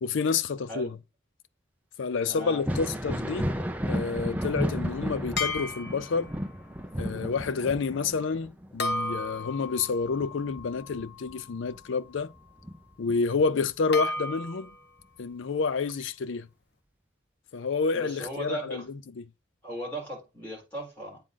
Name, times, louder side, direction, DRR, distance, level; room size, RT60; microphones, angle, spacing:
voice 1, 0.0-1.0 2.0-3.5 3.9-6.3 7.0-12.3 13.0-14.7 15.2-16.5 17.5-19.0, left 4 dB, 75° left, 0.5 m, -29 dB
voice 2, 2.2-2.7 17.9-18.8 19.6-21.2, right 1 dB, 10° left, 4.1 m, -37 dB
Thunder, 2.5-11.8 12.2-13.4 15.0-15.1 15.9-16.0, equal, 10° right, 0.5 m, -34 dB
sound 1, 5.4-6.4 8.8-11.9 13.9-14.8, left 3 dB, 55° left, 0.9 m, -34 dB
8.6 x 3.8 x 3.8 m
head